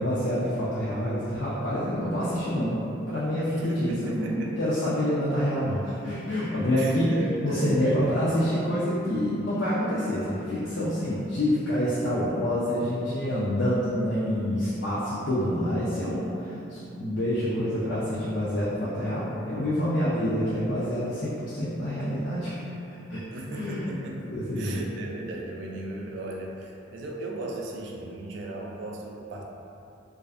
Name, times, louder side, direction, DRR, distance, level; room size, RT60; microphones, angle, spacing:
voice 1, 0.0-2.8 3.1-7.1 7.4-22.6 23.1-23.2 23.5-23.8 24.3-24.8, equal, 60° left, -9 dB, 0.4 m, -27 dB
voice 2, 3.5-4.6 6.8-8.2 23.3-24.2 24.6-29.4, right 2 dB, 65° right, 0 dB, 0.3 m, -36 dB
2.4 x 2.3 x 2.4 m, 2.8 s
head